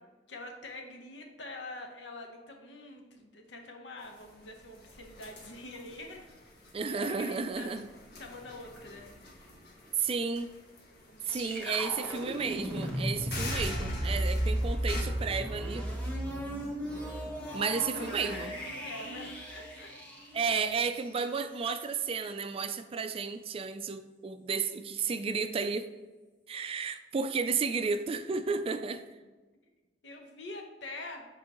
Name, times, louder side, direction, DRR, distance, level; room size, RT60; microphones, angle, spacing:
voice 1, 0.3-6.3 6.9-7.7 8.2-9.1 11.1-12.3 14.0-14.2 17.9-19.9 30.0-31.3, left 2 dB, 80° left, 3 dB, 1.0 m, -45 dB
sound 1, 4.0-15.0, left 1 dB, 60° left, 1.4 m, -45 dB
voice 2, 6.7-7.9 10.0-10.5 11.3-15.9 17.5-18.5 20.3-25.9 26.5-29.0, right 5 dB, 30° right, 10 dB, 0.3 m, -32 dB
sound 2, 11.2-21.1, equal, 10° left, 1.3 m, -35 dB
7.6 x 4.6 x 3.0 m, 1.3 s
head